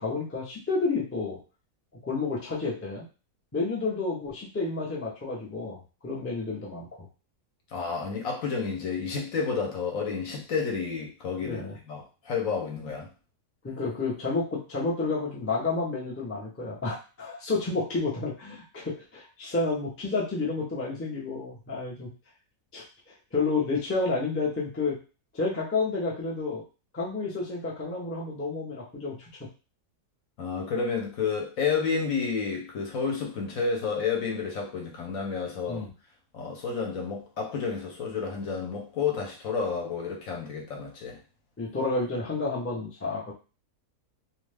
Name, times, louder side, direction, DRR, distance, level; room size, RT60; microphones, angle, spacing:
voice 1, 0.0-1.4 2.0-3.1 3.5-5.8 6.0-6.9 11.4-11.7 13.6-22.1 22.7-22.8 23.3-25.0 25.3-26.6 26.9-29.2 35.7-35.9 41.6-43.3, left 3 dB, 15° left, -4 dB, 0.4 m, -30 dB
voice 2, 7.7-13.1 30.4-35.8 36.3-41.2, left 5 dB, 65° left, 1 dB, 1.0 m, -30 dB
2.6 x 2.3 x 3.3 m, 0.34 s
omnidirectional pair, 1.7 m